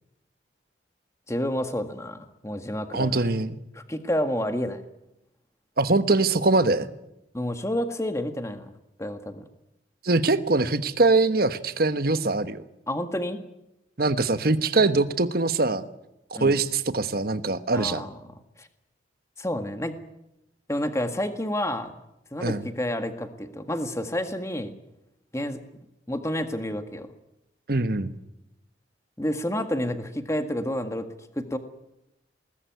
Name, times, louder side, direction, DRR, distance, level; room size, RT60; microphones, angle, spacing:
voice 1, 1.3-3.3 3.7-4.8 7.3-8.7 9.0-9.4 12.9-13.4 16.3-16.6 17.7-18.1 18.6-18.7 19.4-20.0 20.7-21.9 22.3-24.7 25.3-25.6 26.1-27.1 29.2-31.1 31.3-31.6, left 1 dB, 15° left, 8 dB, 1.7 m, -29 dB
voice 2, 2.9-3.6 5.8-6.9 10.0-12.6 14.0-15.8 16.4-18.1 22.4-22.6 27.7-28.1, right 3 dB, 55° right, 11 dB, 1.2 m, -23 dB
21.0 x 19.5 x 9.4 m, 0.86 s
head